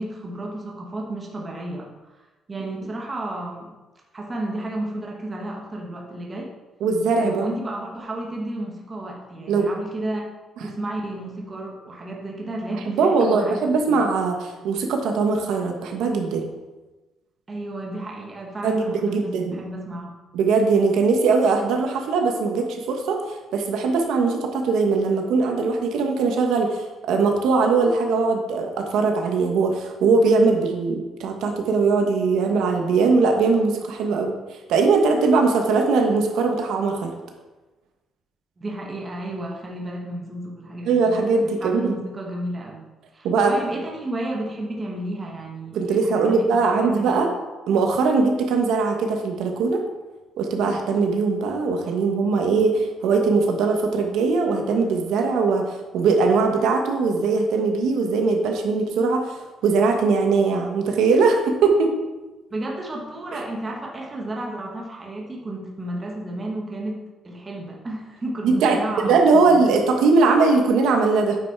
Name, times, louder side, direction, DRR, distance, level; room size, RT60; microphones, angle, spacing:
voice 1, 0.0-1.9 2.5-3.7 4.1-6.5 7.2-10.2 10.6-14.0 17.5-20.1 38.6-47.2 62.5-69.7, right 1 dB, 20° right, -1 dB, 1.2 m, -32 dB
voice 2, 6.8-7.5 9.5-9.7 12.9-16.5 18.6-19.6 20.3-23.2 23.5-34.3 34.7-37.1 40.8-41.9 43.2-43.5 45.7-47.3 47.7-49.8 50.4-59.2 59.6-61.9 68.4-71.4, right 4 dB, 75° right, 3 dB, 1.3 m, -20 dB
9.4 x 5.7 x 4.6 m, 1.1 s
cardioid pair, 180°, 0 cm